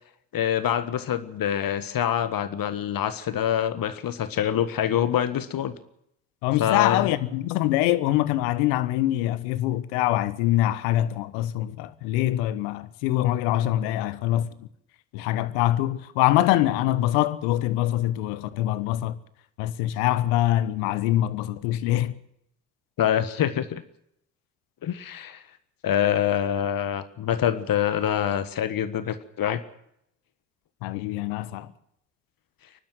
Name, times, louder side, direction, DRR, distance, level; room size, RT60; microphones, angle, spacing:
voice 1, 0.3-5.7 6.6-7.1 23.0-23.8 24.8-25.4 25.8-29.6, left 10 dB, 55° left, 1.5 m, -25 dB
voice 2, 6.4-14.7 15.1-19.2 19.6-22.2 30.8-31.7, left 14 dB, 75° left, 1.1 m, -24 dB
23.5 x 12.0 x 9.3 m
hypercardioid pair, 50°, 42 cm